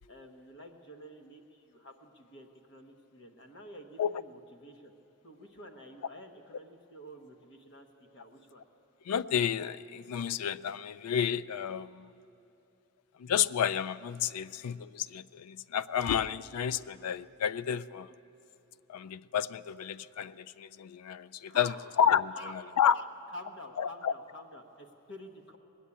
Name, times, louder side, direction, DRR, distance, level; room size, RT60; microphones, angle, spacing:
voice 1, 0.1-4.9 5.2-8.6 21.5-21.8 22.3-22.5 22.9-23.1 23.3-25.6, left 1 dB, 55° left, 4 dB, 1.1 m, -49 dB
voice 2, 9.1-12.1 13.2-18.1 18.9-23.0 23.8-24.1, left 8 dB, 85° left, 18 dB, 0.3 m, -31 dB
20.0 x 8.3 x 8.4 m, 2.8 s
head